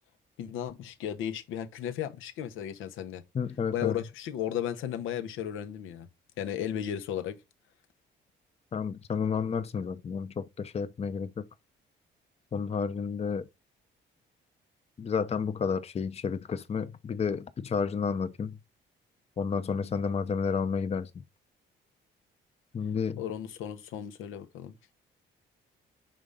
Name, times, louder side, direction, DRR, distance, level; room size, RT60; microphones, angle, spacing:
voice 1, 0.4-3.2 3.7-6.1 6.4-7.4 23.2-24.7, left 10 dB, 90° left, 0.9 m, -35 dB
voice 2, 3.3-3.9 8.7-11.4 12.5-13.5 15.0-18.6 19.4-21.1 22.7-23.2, left 6 dB, 30° left, 0.6 m, -31 dB
5.1 x 3.6 x 5.4 m
cardioid pair, 90°, 20 cm